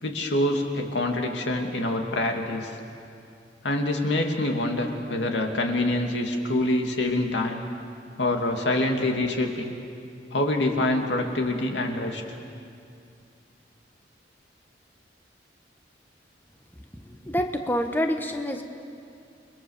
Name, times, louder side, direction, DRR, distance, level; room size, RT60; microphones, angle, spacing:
voice 1, 0.0-2.7 3.6-7.6 8.2-9.7 10.3-12.2, left 1 dB, 85° left, 3 dB, 2.6 m, -26 dB
voice 2, 16.9-18.6, equal, 10° left, 4 dB, 1.2 m, -27 dB
29.5 x 22.0 x 7.3 m, 2.5 s
head